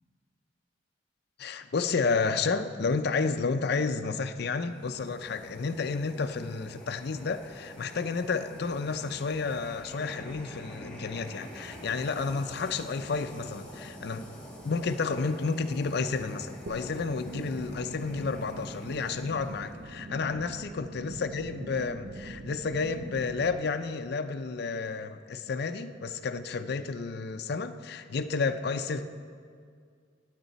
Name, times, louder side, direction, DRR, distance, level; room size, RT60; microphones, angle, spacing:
voice 1, 1.4-14.3 14.6-29.0, left 4 dB, 60° left, 8 dB, 0.5 m, -31 dB
sound 1, 4.6-20.0, equal, 10° left, 1.9 m, -47 dB
sound 2, 16.7-23.6, right 1 dB, 50° right, 0.6 m, -43 dB
17.0 x 8.8 x 4.1 m, 2.1 s
head